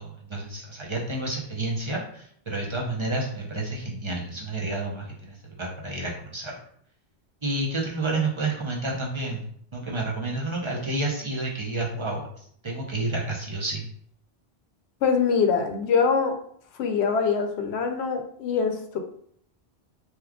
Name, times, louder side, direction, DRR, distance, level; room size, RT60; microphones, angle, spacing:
voice 1, 0.0-6.6 7.4-9.4 9.7-13.8, right 2 dB, 35° right, -2 dB, 0.6 m, -30 dB
voice 2, 15.0-16.3 16.8-19.0, left 5 dB, 85° left, 5 dB, 0.8 m, -23 dB
2.9 x 2.3 x 3.5 m, 0.62 s
omnidirectional pair, 1.1 m